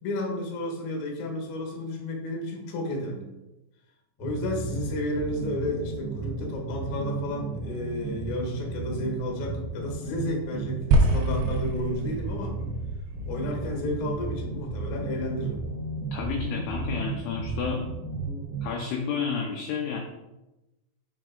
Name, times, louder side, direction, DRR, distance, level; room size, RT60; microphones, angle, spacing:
voice 1, 0.0-3.3 4.2-12.6 13.3-15.6, left 1 dB, 60° left, 0 dB, 2.1 m, -32 dB
sound 1, 4.2-18.7, right 3 dB, 55° right, 1.8 m, -34 dB
sound 2, 10.9-15.3, right 1 dB, 90° right, 3.4 m, -27 dB
voice 2, 16.1-17.8 18.6-20.0, left 6 dB, 80° left, 1 dB, 2.4 m, -30 dB
6.8 x 6.0 x 3.9 m, 0.98 s
omnidirectional pair, 5.5 m